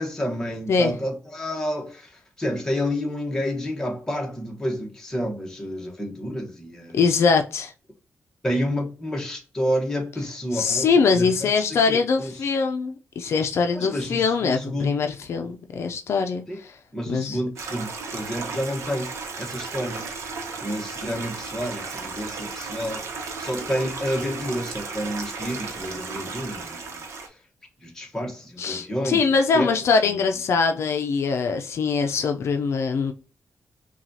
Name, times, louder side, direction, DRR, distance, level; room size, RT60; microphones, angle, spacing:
voice 1, 0.0-7.0 8.4-12.3 13.7-15.0 16.5-16.6 16.9-19.1 19.4-20.1 20.6-23.1 23.4-26.9 27.2-27.3 27.8-29.2 29.5-29.7, equal, 10° left, 1.1 m, -29 dB
voice 2, 6.9-7.7 10.5-16.8 17.1-17.4 28.6-33.1, left 5 dB, 70° left, 0.5 m, -23 dB
Stream, 17.6-27.3, right 4 dB, 85° right, 0.9 m, -34 dB
5.8 x 2.3 x 2.7 m
wide cardioid pair, 135°, 5 cm